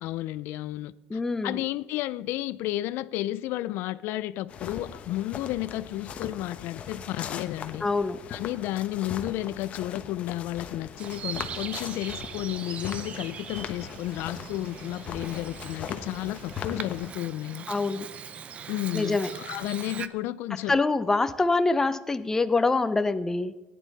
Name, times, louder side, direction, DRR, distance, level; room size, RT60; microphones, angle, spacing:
voice 1, 0.0-7.8 8.3-17.6 18.7-20.8, left 15 dB, 70° left, 0.4 m, -32 dB
voice 2, 1.1-1.6 7.8-8.2 17.7-18.1 18.9-19.3 20.7-23.5, left 3 dB, 10° left, 0.5 m, -25 dB
sound 1, 4.5-17.1, left 7 dB, 35° left, 1.0 m, -40 dB
Bird vocalization bird call bird song, 11.0-20.1, right 7 dB, 35° right, 0.6 m, -41 dB
17.5 x 10.0 x 4.0 m
cardioid pair, 160°, 4 cm